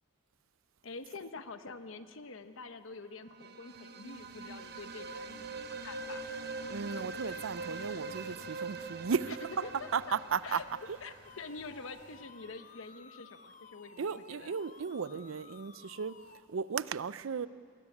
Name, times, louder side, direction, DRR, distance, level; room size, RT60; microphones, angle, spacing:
voice 1, 0.8-6.3 9.6-9.9 10.4-10.6 11.0-14.5, left 4 dB, 80° left, 1.0 m, -46 dB
sound 1, 3.3-12.1, right 3 dB, 50° right, 0.9 m, -43 dB
sound 2, 4.0-12.3, left 2 dB, 65° left, 2.9 m, -64 dB
voice 2, 6.7-9.7 9.9-10.6 14.0-16.2 16.5-17.5, right 6 dB, 80° right, 0.5 m, -35 dB
sound 3, 11.2-16.4, left 5 dB, 35° left, 0.8 m, -55 dB
20.5 x 17.0 x 9.8 m
head